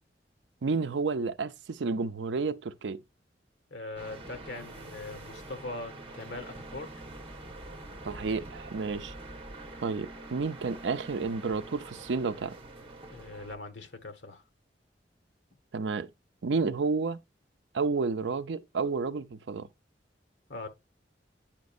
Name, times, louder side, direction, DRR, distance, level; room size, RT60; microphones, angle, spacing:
voice 1, 0.6-3.0 8.0-9.1 9.8-12.6 15.7-16.1 16.4-17.2 17.7-19.7, right 4 dB, 85° right, 0.5 m, -31 dB
voice 2, 3.7-6.9 13.0-14.4 20.5-20.7, left 2 dB, 90° left, 1.2 m, -41 dB
sound 1, 4.0-13.6, right 2 dB, 30° right, 1.4 m, -45 dB
8.8 x 5.2 x 2.5 m
head